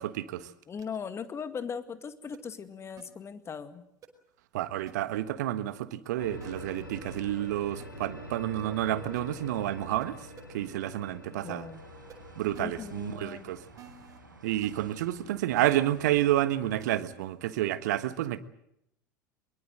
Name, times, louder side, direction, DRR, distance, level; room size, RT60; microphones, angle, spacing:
voice 1, 0.0-0.5 4.5-10.2 10.5-11.6 12.4-13.6 14.4-18.4, right 13 dB, 60° right, 1.4 m, -30 dB
voice 2, 0.7-3.8 11.4-11.8 12.6-13.5, left 6 dB, 25° left, 2.1 m, -39 dB
sound 1, 0.8-1.0 2.3-2.4 3.0-3.1 4.0-4.1 4.9-5.0 6.4-6.5 7.8-7.9 9.2-9.3 10.0-10.1 10.4-10.5 12.1-12.2 12.5-12.6 13.8-14.2 14.6-14.7 15.6-16.0 16.8-17.0, right 8 dB, 35° right, 4.8 m, -50 dB
sound 2, 6.2-15.0, left 1 dB, 85° left, 4.1 m, -46 dB
sound 3, 11.7-16.8, right 4 dB, 80° right, 3.8 m, -53 dB
23.0 x 23.0 x 7.8 m
figure-of-eight pair, 75°, 10 cm